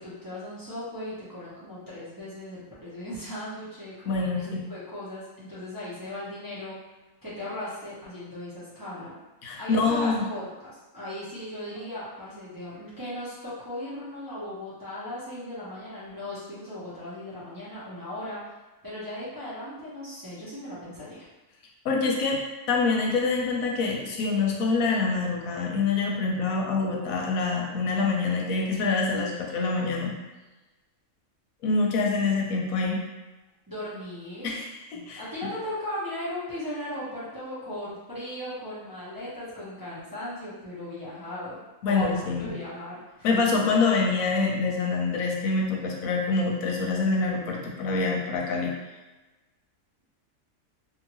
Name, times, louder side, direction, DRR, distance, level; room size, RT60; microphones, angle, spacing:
voice 1, 0.0-6.8 7.2-9.1 9.6-18.5 18.8-21.3 33.7-34.5 34.9-43.4, left 1 dB, 20° right, -11 dB, 0.7 m, -37 dB
voice 2, 4.1-4.4 9.4-10.3 21.8-22.4 22.7-30.1 31.6-33.0 34.4-34.6 35.1-35.2 41.8-42.5 43.2-48.7, left 4 dB, 85° left, -1 dB, 1.0 m, -25 dB
2.7 x 2.6 x 3.0 m, 1.1 s
omnidirectional pair, 1.4 m